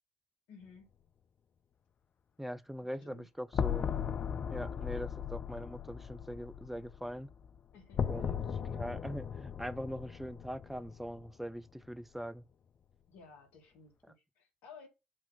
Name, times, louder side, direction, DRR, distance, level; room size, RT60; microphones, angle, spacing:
voice 1, 0.5-0.9 3.0-3.3 7.7-8.1 13.1-14.9, left 5 dB, 65° left, 2.4 m, -55 dB
voice 2, 2.4-3.9 4.5-7.3 8.1-12.4, equal, 5° right, 0.8 m, -42 dB
sound 1, 3.5-11.5, left 7 dB, 45° left, 0.6 m, -37 dB
7.5 x 2.9 x 5.8 m
figure-of-eight pair, 50°, 4 cm